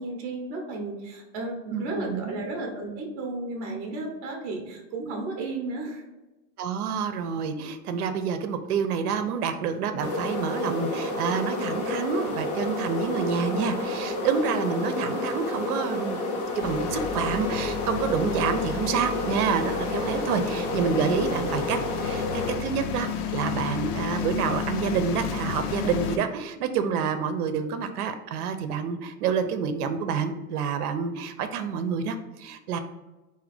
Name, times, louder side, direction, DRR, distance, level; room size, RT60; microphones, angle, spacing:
voice 1, 0.0-6.0, right 2 dB, 25° right, 2 dB, 0.6 m, -33 dB
voice 2, 1.7-2.4 6.6-32.8, right 6 dB, 80° right, 9 dB, 0.7 m, -28 dB
sound 1, 10.0-22.6, left 2 dB, 30° left, 0.5 m, -30 dB
sound 2, 16.6-26.2, left 8 dB, 85° left, 0.7 m, -32 dB
3.8 x 2.8 x 4.9 m, 1.1 s
supercardioid pair, 180°, 44 cm